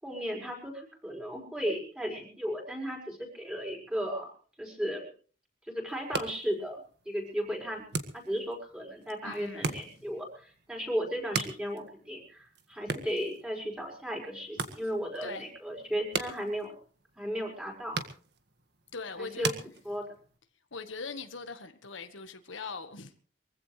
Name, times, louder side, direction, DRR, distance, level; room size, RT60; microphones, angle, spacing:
voice 1, 0.0-4.3 4.6-5.1 5.7-6.8 7.0-7.8 8.1-16.7 17.2-18.1 19.2-19.5 19.8-20.1, equal, 5° right, 5.0 m, -35 dB
sound 1, 5.9-20.4, right 4 dB, 55° right, 1.7 m, -40 dB
voice 2, 9.2-10.1 15.2-15.5 18.9-19.5 20.7-23.2, left 4 dB, 75° left, 1.5 m, -41 dB
23.5 x 15.5 x 3.3 m
head